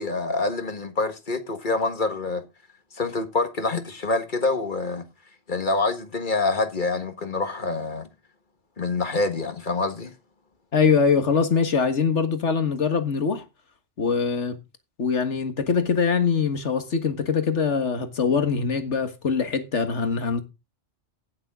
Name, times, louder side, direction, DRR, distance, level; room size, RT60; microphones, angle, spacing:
voice 1, 0.0-2.4 3.0-5.0 5.5-8.1 8.8-10.1, left 3 dB, 45° left, 1.7 m, -26 dB
voice 2, 10.7-13.4 14.0-14.6 15.0-20.4, left 5 dB, 85° left, 1.9 m, -23 dB
16.5 x 7.3 x 3.7 m
omnidirectional pair, 1.2 m